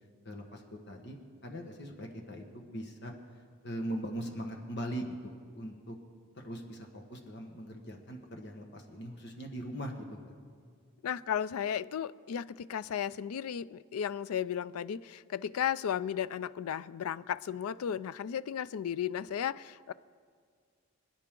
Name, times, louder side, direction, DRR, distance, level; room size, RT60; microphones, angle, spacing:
voice 1, 0.2-3.1 3.6-6.0 6.3-10.3, equal, 55° left, 2 dB, 1.5 m, -41 dB
voice 2, 11.0-19.9, left 9 dB, 90° left, 18 dB, 0.4 m, -34 dB
26.5 x 9.7 x 3.8 m, 2.1 s
head